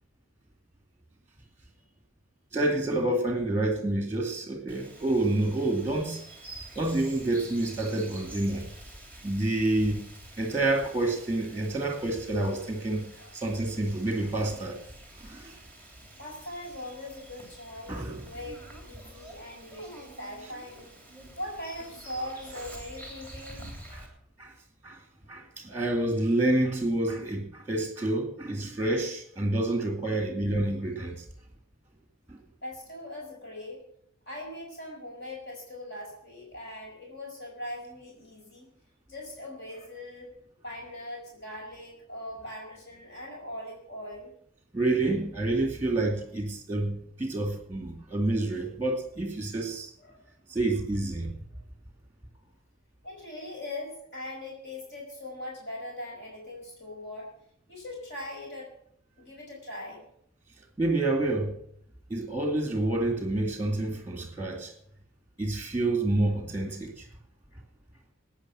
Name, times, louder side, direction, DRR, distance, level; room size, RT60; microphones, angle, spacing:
voice 1, 2.5-6.2 6.8-8.7 9.2-10.1 10.4-13.1 13.3-14.8 15.2-15.6 17.9-18.2 23.9-24.0 24.4-24.5 24.8-25.0 25.3-31.2 32.3-32.4 44.7-49.9 50.5-51.3 60.8-61.6 62.1-64.7 65.4-67.1, right 2 dB, 10° right, 2.3 m, -28 dB
Bird vocalization bird call bird song, 4.7-24.1, right 1 dB, 10° left, 3.1 m, -47 dB
voice 2, 16.2-20.9 21.4-24.1 25.7-25.9 32.6-33.8 34.3-38.7 39.1-40.3 40.6-44.3 45.9-46.0 50.0-50.2 53.0-57.3 57.7-58.7 59.2-60.0, left 1 dB, 50° left, 5.2 m, -41 dB
19.0 x 9.2 x 6.3 m
head